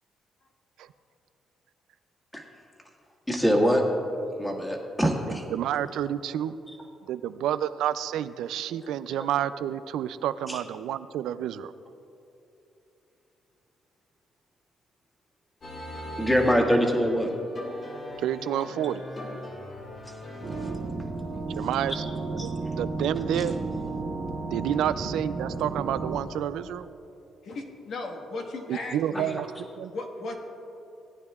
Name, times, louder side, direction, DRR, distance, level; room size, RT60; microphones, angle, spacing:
voice 1, 3.3-3.8 4.4-5.4 16.2-17.3 20.1-20.2 23.3-23.4, equal, 10° left, 0 dB, 1.7 m, -23 dB
voice 2, 5.3-6.6 7.1-11.7 18.2-19.0 21.5-22.1 22.3-23.6 24.5-26.9 28.7-29.5 29.8-29.9, right 10 dB, 85° right, 14 dB, 0.3 m, -29 dB
sound 1, 15.6-20.8, left 1 dB, 45° left, 1.9 m, -40 dB
sound 2, 20.4-26.2, right 3 dB, 50° right, 1.1 m, -33 dB
voice 3, 27.4-29.4 29.9-30.4, left 2 dB, 70° left, 1 dB, 1.4 m, -36 dB
18.5 x 9.4 x 2.4 m, 2.8 s
cardioid pair, 90°, 0 cm